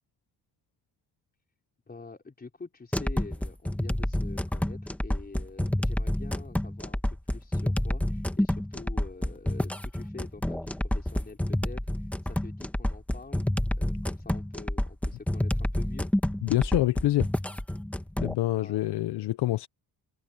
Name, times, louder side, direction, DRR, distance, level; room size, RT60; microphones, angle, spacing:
voice 1, 1.9-7.0 7.3-13.5 13.7-16.1 18.5-19.3, left 4 dB, 25° left, 4.8 m, -46 dB
sound 1, 2.9-18.3, left 1 dB, 5° left, 1.3 m, -29 dB
voice 2, 16.4-17.3 18.2-19.7, left 15 dB, 85° left, 0.7 m, -26 dB
cardioid pair, 125°, 39 cm